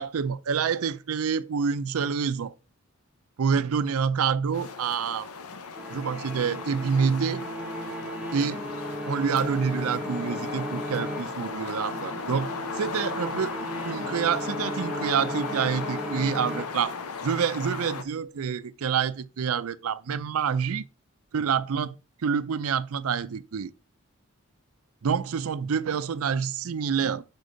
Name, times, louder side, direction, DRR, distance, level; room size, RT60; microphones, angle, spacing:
voice 1, 0.0-2.5 3.4-5.3 5.9-7.5 8.3-8.7 9.1-13.6 13.8-17.0 17.2-20.8 21.3-22.0 22.2-23.7 25.0-27.2, right 6 dB, 75° right, 0.5 m, -27 dB
sound 1, 4.5-18.0, left 5 dB, 85° left, 0.7 m, -36 dB
sound 2, 5.7-17.2, right 1 dB, 5° right, 0.7 m, -36 dB
6.6 x 4.5 x 3.8 m
head